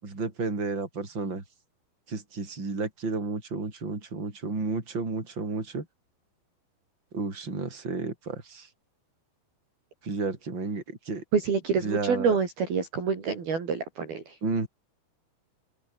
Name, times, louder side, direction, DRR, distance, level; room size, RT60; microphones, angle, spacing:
voice 1, 0.0-1.4 2.1-5.8 7.1-8.7 10.0-11.2 11.8-12.4 14.4-14.7, right 3 dB, 25° right, 6.2 m, -32 dB
voice 2, 11.3-14.4, right 6 dB, 50° right, 5.7 m, -27 dB
open air
omnidirectional pair, 5.7 m